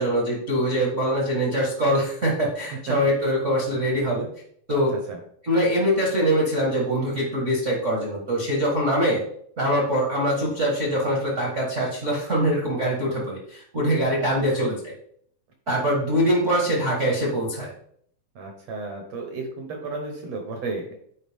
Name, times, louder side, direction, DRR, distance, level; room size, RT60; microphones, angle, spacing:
voice 1, 0.0-4.2 4.7-4.9 5.4-9.2 9.6-14.9 15.7-17.7, equal, 50° right, -3 dB, 0.8 m, -23 dB
voice 2, 4.7-5.2 18.3-20.9, right 3 dB, 65° right, 3 dB, 1.6 m, -33 dB
9.9 x 4.8 x 3.6 m, 0.65 s
omnidirectional pair, 4.2 m